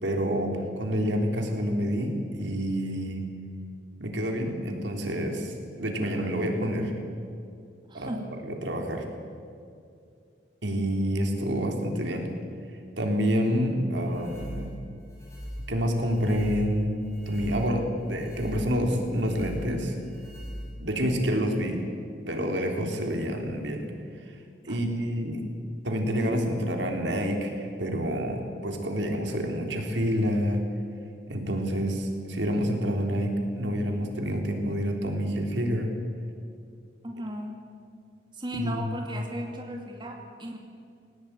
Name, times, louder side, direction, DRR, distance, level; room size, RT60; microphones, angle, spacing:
voice 1, 0.0-3.2 4.0-6.9 7.9-8.2 8.5-9.0 10.6-12.3 13.0-14.7 15.7-19.9 20.8-21.9 22.3-23.9 24.7-25.4 25.8-30.6 31.3-35.9 38.5-38.8, equal, 85° right, 3 dB, 3.6 m, -28 dB
voice 2, 7.9-8.3 24.7-24.8 37.0-37.6 38.3-40.6, equal, 25° right, 2 dB, 2.3 m, -36 dB
sound 1, 13.9-21.1, equal, 15° left, 6.5 m, -40 dB
19.5 x 18.5 x 9.0 m, 2.5 s
head